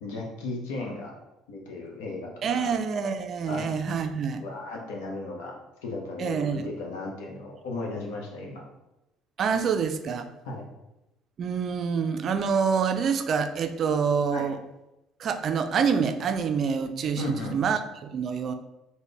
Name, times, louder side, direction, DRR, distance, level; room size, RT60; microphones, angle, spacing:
voice 1, 0.0-1.1 1.5-2.7 3.5-3.7 4.4-5.6 5.8-8.6 10.4-10.7 14.3-14.5 17.2-17.6, left 2 dB, 75° left, -1 dB, 0.8 m, -35 dB
voice 2, 2.4-4.4 6.2-6.7 9.4-10.3 11.4-14.6 15.2-18.5, right 6 dB, 50° right, 8 dB, 0.3 m, -26 dB
3.7 x 2.1 x 3.3 m, 0.92 s
hypercardioid pair, 55°, 0 cm